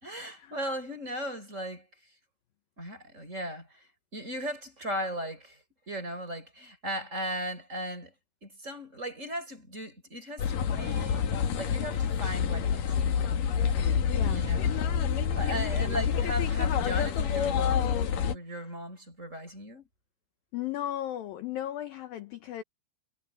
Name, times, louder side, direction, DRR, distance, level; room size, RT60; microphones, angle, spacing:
voice 1, 0.0-1.9 2.8-8.1 8.4-12.9 14.3-14.8 15.1-19.9, equal, 15° right, 4.9 m, -37 dB
sound 1, 10.4-18.3, left 7 dB, 55° left, 2.8 m, -27 dB
voice 2, 14.1-14.4 20.5-22.6, left 12 dB, 75° left, 2.2 m, -35 dB
omnidirectional pair, 5.6 m